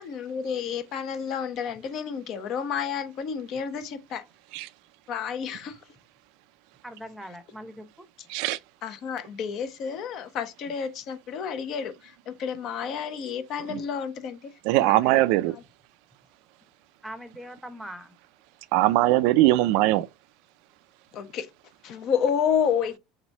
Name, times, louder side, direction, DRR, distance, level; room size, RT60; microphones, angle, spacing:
voice 1, 0.0-4.2 5.1-5.8 8.8-14.5 14.8-15.2 21.1-21.5 21.8-23.0, left 7 dB, 50° left, 0.7 m, -30 dB
voice 2, 6.8-8.1 17.0-18.1, equal, 5° right, 0.8 m, -41 dB
voice 3, 14.6-15.6 18.7-20.1, right 16 dB, 70° right, 0.3 m, -21 dB
3.5 x 3.1 x 3.9 m
supercardioid pair, 125°, 0 cm